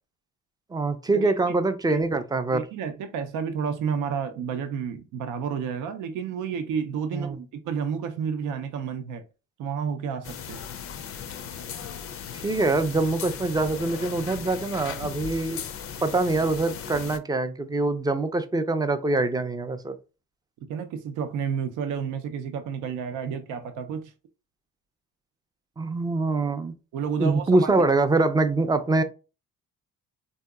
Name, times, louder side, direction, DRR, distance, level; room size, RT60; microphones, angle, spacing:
voice 1, 0.7-2.7 7.1-7.4 12.3-15.6 16.0-19.9 25.8-26.7 27.2-29.0, right 3 dB, 15° right, 0.4 m, -24 dB
voice 2, 2.5-9.2 9.6-10.6 20.7-24.1 26.9-27.7, right 7 dB, 90° right, 0.5 m, -30 dB
sound 1, 10.2-17.2, left 7 dB, 50° left, 0.4 m, -37 dB
3.8 x 2.7 x 2.3 m
cardioid pair, 90°, 30 cm